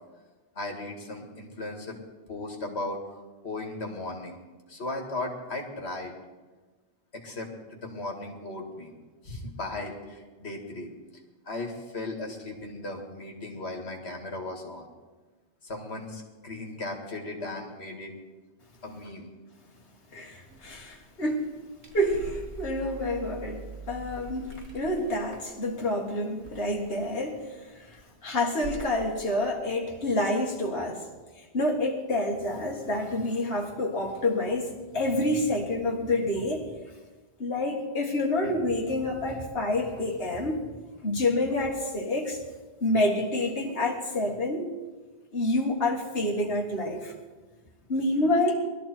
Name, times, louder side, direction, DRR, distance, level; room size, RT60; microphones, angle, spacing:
voice 1, 0.6-2.0 2.3-4.4 4.7-6.1 7.1-8.9 9.2-10.9 11.4-14.9 15.6-18.1 18.8-19.3 24.2-24.3, left 2 dB, 85° left, 1 dB, 2.2 m, -37 dB
voice 2, 20.1-21.5 21.9-31.0 31.4-36.7 37.4-40.7 41.0-42.4 42.8-44.7 45.3-47.1 47.9-48.5, left 1 dB, 65° left, -2 dB, 2.1 m, -28 dB
sound 1, 20.5-27.4 27.7-28.2 28.6-29.0 29.3-30.6, right 3 dB, 85° right, 1.8 m, -44 dB
20.5 x 13.0 x 4.5 m, 1.3 s
omnidirectional pair, 1.1 m